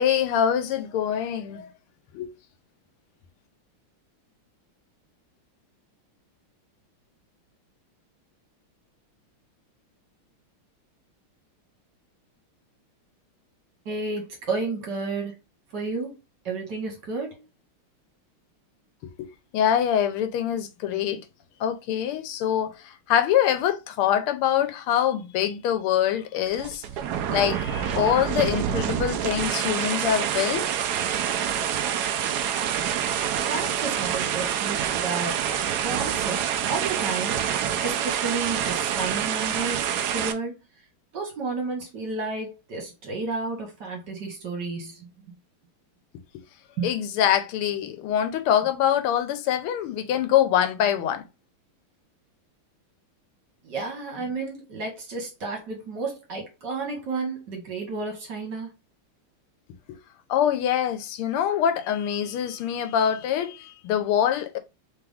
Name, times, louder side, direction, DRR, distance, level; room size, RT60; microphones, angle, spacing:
voice 1, 0.0-1.7 2.1-2.3 19.0-21.2 21.6-26.8 27.3-30.7 46.8-51.2 59.9-60.0 60.3-64.6, left 10 dB, 90° left, 1.6 m, -24 dB
voice 2, 13.9-15.3 15.7-16.2 16.5-17.5 33.4-35.5 35.8-37.4 37.8-40.6 41.1-45.1 46.8-46.9 53.6-58.7, right 3 dB, 55° right, 1.9 m, -32 dB
sound 1, 26.5-40.3, right 9 dB, 90° right, 0.8 m, -27 dB
3.8 x 3.4 x 3.4 m
omnidirectional pair, 2.3 m